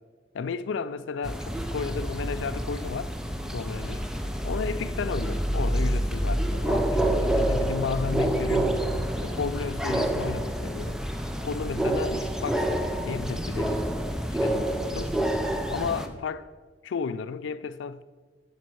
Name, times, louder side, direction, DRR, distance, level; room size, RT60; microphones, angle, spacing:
voice 1, 0.3-3.1 3.5-4.0 4.4-7.0 7.4-8.9 9.2-11.0 11.4-12.7 13.0-13.8 14.3-15.2 15.7-16.5 16.8-18.0, left 5 dB, 80° left, 0.4 m, -33 dB
sound 1, 1.2-16.1, right 1 dB, 5° right, 0.4 m, -28 dB
sound 2, 4.1-4.8 5.1-5.2 6.7-9.9, left 1 dB, 40° right, 1.0 m, -44 dB
14.5 x 5.2 x 4.6 m
head